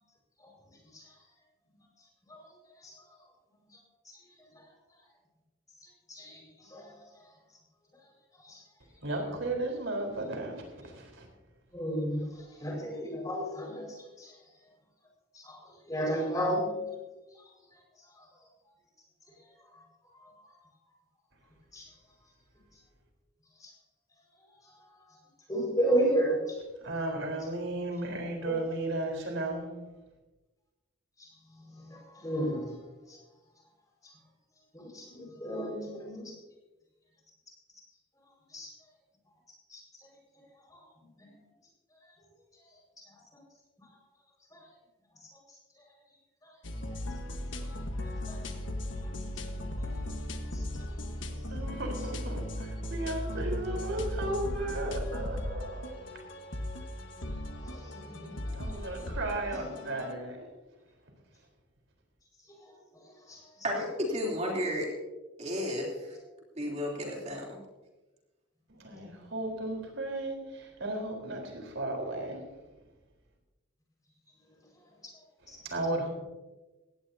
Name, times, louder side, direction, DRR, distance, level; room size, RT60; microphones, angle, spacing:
voice 1, 6.1-7.0 8.4-8.6 11.7-12.2 12.6-14.3 15.4-15.6 15.9-16.9 20.3-20.5 21.7-21.9 23.6-23.7 25.5-26.6 28.4-28.6 31.9-32.7 33.1-33.2 34.0-34.1 34.7-36.3 38.5-38.7 39.7-39.8 40.7-40.8 41.2-41.3 44.5-44.6 48.3-48.4 50.5-50.6 57.6-58.5 62.6-62.7 63.3-63.4 75.5-75.6, right 1 dB, 20° left, -1 dB, 5.1 m, -32 dB
voice 2, 9.0-11.3 12.1-12.3 26.8-29.7 51.5-56.1 58.5-60.5 68.7-72.5 75.4-76.1, right 2 dB, 80° right, 2 dB, 4.1 m, -35 dB
sound 1, 46.6-60.1, left 1 dB, 75° left, 1.4 m, -37 dB
voice 3, 63.6-64.9 65.4-66.2 66.5-67.6, equal, 35° right, -2 dB, 3.3 m, -32 dB
18.0 x 17.0 x 2.8 m, 1.1 s
head